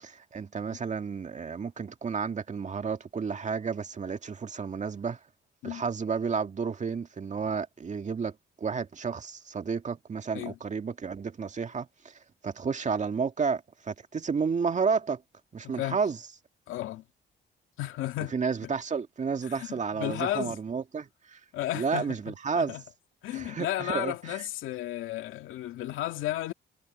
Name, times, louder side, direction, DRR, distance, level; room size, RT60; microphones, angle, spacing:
voice 1, 0.1-5.2 5.6-15.2 15.5-16.2 18.3-21.4 21.7-22.7 23.3-24.4, right 5 dB, 35° right, 2.0 m, -31 dB
voice 2, 15.6-16.0 16.7-17.0 17.8-18.4 18.6-18.7 19.4-20.6 21.5-22.8 23.2-26.5, left 14 dB, 90° left, 2.3 m, -34 dB
cardioid pair, 90°, 20 cm